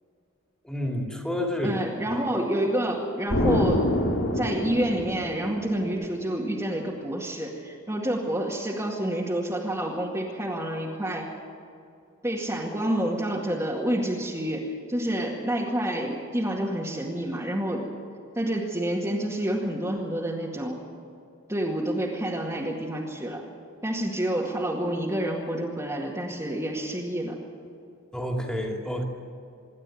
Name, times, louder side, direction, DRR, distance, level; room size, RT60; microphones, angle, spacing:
voice 1, 0.6-1.8 28.1-29.0, left 1 dB, 5° left, 0 dB, 2.8 m, -29 dB
voice 2, 1.6-3.8 4.3-11.3 12.2-17.8 18.4-20.8 21.5-23.4 23.8-27.4, right 1 dB, 15° right, -4 dB, 2.1 m, -28 dB
Explosion, 3.3-6.0, left 1 dB, 75° left, 2.6 m, -26 dB
25.5 x 12.0 x 9.2 m, 2.4 s
head